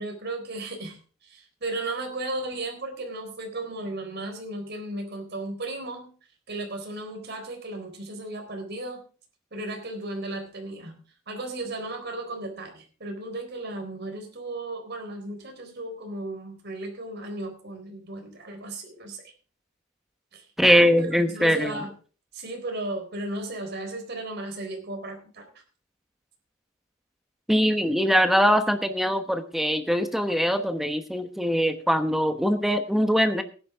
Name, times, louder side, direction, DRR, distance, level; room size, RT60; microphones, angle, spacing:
voice 1, 0.0-6.1 6.5-9.0 9.5-11.0 11.3-19.2 20.3-20.5 21.0-21.9 22.3-25.5, right 2 dB, 55° right, 3 dB, 4.0 m, -35 dB
voice 2, 20.6-21.8 27.5-33.4, equal, ahead, 8 dB, 1.0 m, -22 dB
17.5 x 10.5 x 3.6 m, 0.38 s
head